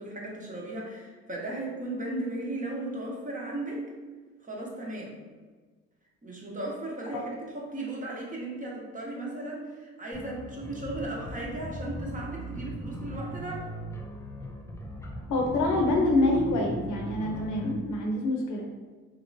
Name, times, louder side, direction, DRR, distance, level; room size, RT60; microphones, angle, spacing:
voice 1, 0.0-3.9 4.4-5.2 6.2-7.3 7.5-13.7, right 2 dB, 25° right, -3 dB, 0.9 m, -36 dB
sound 1, 10.1-17.7, equal, 10° left, 0.4 m, -39 dB
voice 2, 15.3-18.7, left 2 dB, 85° left, 0 dB, 0.7 m, -26 dB
3.1 x 2.9 x 2.6 m, 1.4 s
cardioid pair, 90°, 30 cm